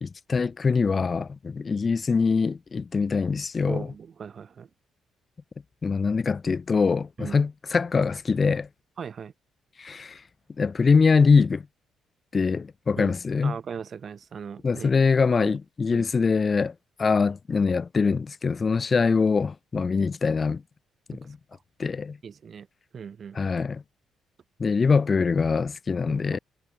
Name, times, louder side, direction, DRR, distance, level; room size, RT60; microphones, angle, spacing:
voice 1, 0.0-3.9 5.8-8.7 9.8-10.2 10.6-11.6 12.3-13.6 14.6-20.6 21.1-21.4 21.8-22.2 23.4-23.8 24.6-26.4, left 5 dB, 35° left, 0.4 m, -23 dB
voice 2, 3.7-4.7 7.2-7.4 9.0-9.3 13.0-13.1 13.4-14.9 15.4-15.5 15.9-16.1 21.1-21.2 21.5-21.6 22.2-22.7 22.9-23.4 26.1-26.4, right 7 dB, 50° right, 1.3 m, -38 dB
cardioid pair, 100°, 0 cm